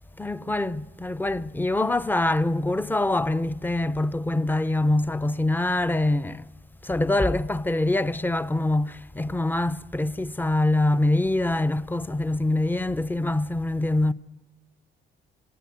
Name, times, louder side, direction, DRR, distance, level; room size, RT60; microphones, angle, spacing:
voice 1, 0.2-6.5 6.8-14.1, left 2 dB, 10° left, 0.7 m, -24 dB
26.0 x 18.0 x 8.1 m
cardioid pair, 90°, 20 cm